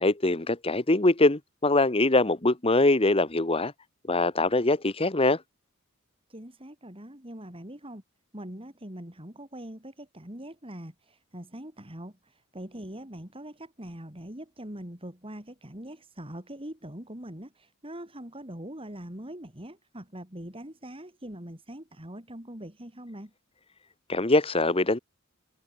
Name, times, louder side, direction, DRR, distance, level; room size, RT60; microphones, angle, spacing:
voice 1, 0.0-3.7 4.1-5.4 24.1-25.0, left 2 dB, 25° left, 1.3 m, -23 dB
voice 2, 6.3-8.0 8.3-23.3, right 1 dB, 25° right, 4.1 m, -42 dB
head